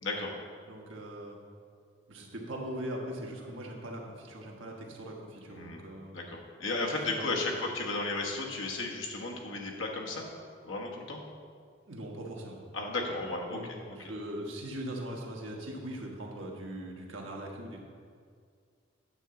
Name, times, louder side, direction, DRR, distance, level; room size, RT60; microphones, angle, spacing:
voice 1, 0.0-0.3 5.5-5.9 6.1-10.3 10.6-11.2 12.7-13.6, left 2 dB, 80° left, 0 dB, 1.2 m, -34 dB
voice 2, 0.6-1.4 2.1-6.2 7.0-7.1 7.5-7.6 11.9-12.6 13.5-17.8, right 1 dB, 85° right, -1 dB, 1.4 m, -40 dB
9.0 x 3.8 x 6.8 m, 2.1 s
head